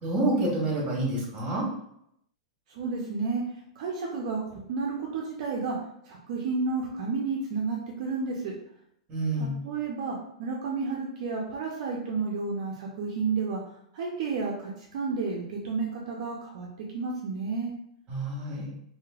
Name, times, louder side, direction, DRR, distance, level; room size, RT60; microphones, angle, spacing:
voice 1, 0.0-1.7 9.1-9.5 18.1-18.7, right 2 dB, 30° right, -2 dB, 1.4 m, -28 dB
voice 2, 2.7-3.4 3.8-5.8 6.0-8.5 9.4-13.6 13.9-16.7 16.9-17.7, right 4 dB, 65° right, -2 dB, 0.6 m, -31 dB
3.1 x 2.7 x 2.4 m, 0.74 s
hypercardioid pair, 130°, 4 cm